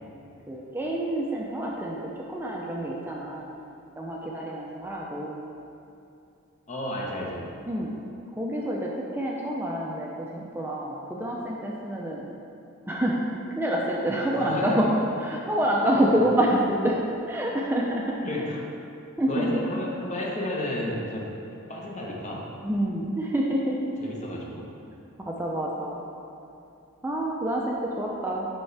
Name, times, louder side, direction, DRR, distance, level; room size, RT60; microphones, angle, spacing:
voice 1, 0.5-2.0 2.3-3.6 4.0-5.4 7.7-7.9 8.4-12.2 12.9-13.2 13.5-14.9 15.2-16.9 17.3-18.5 19.2-19.5 22.6-23.9 24.2-24.3 24.9-26.0 27.0-28.5, right 1 dB, 10° right, -3 dB, 0.5 m, -27 dB
voice 2, 6.7-7.4 14.3-14.8 18.2-18.6 19.3-21.3 21.7-22.5 24.0-24.6, left 1 dB, 35° left, -3 dB, 1.0 m, -32 dB
8.1 x 5.5 x 3.4 m, 2.7 s
head